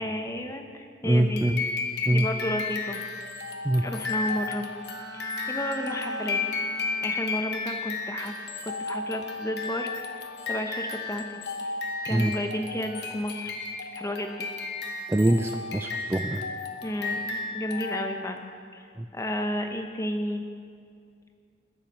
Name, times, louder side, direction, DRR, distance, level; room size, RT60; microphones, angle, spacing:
voice 1, 0.0-1.4 2.1-3.0 3.8-4.7 5.1-6.4 7.0-8.3 8.6-11.7 12.1-13.5 13.9-14.5 16.8-18.4 18.7-18.9 19.1-20.5, equal, 15° left, 5 dB, 0.8 m, -32 dB
voice 2, 1.0-1.6 2.1-2.3 3.6-3.8 12.1-12.3 15.1-16.4 19.0-19.1, right 1 dB, 15° right, 5 dB, 0.3 m, -24 dB
sound 1, 1.4-18.4, left 3 dB, 60° left, 1.2 m, -33 dB
Bowed string instrument, 4.8-8.0, right 1 dB, 85° right, 3.2 m, -43 dB
21.0 x 7.2 x 5.4 m, 2.3 s
head